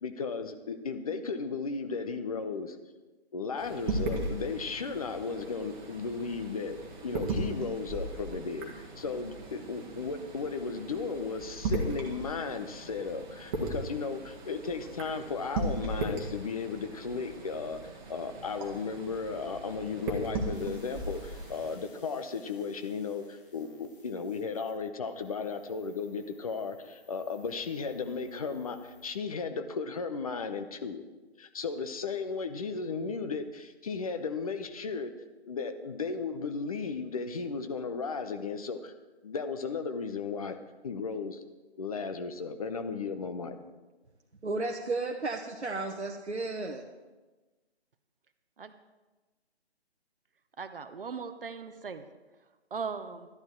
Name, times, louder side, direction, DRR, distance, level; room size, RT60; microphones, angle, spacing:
voice 1, 0.0-2.8 3.3-6.8 7.0-17.8 18.1-31.0 31.4-35.1 35.4-38.9 39.2-40.6 40.8-41.4 41.8-43.6, left 5 dB, 35° left, 8 dB, 0.8 m, -35 dB
sound 1, 3.6-21.8, right 2 dB, 20° right, 1.5 m, -37 dB
sound 2, 20.5-29.1, left 2 dB, 50° left, 2.4 m, -59 dB
voice 2, 44.4-46.9, right 3 dB, 90° right, 2 dB, 1.1 m, -33 dB
voice 3, 50.6-52.0 52.7-53.3, right 5 dB, 55° right, 9 dB, 0.8 m, -38 dB
12.0 x 10.5 x 4.5 m, 1.2 s
figure-of-eight pair, 145°, 33 cm